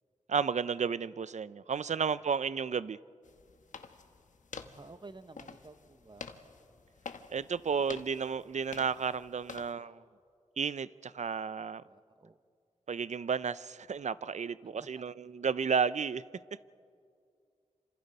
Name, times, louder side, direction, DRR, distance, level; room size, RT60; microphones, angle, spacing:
voice 1, 0.3-3.0 7.3-10.0 10.6-11.8 12.9-16.2, right 6 dB, 65° right, 0.6 m, -32 dB
sound 1, 3.2-9.7, left 5 dB, 85° left, 1.2 m, -49 dB
voice 2, 4.6-6.3 11.9-12.4 14.8-15.1, right 3 dB, 35° right, 1.0 m, -52 dB
28.0 x 26.5 x 5.5 m
wide cardioid pair, 65°, 13 cm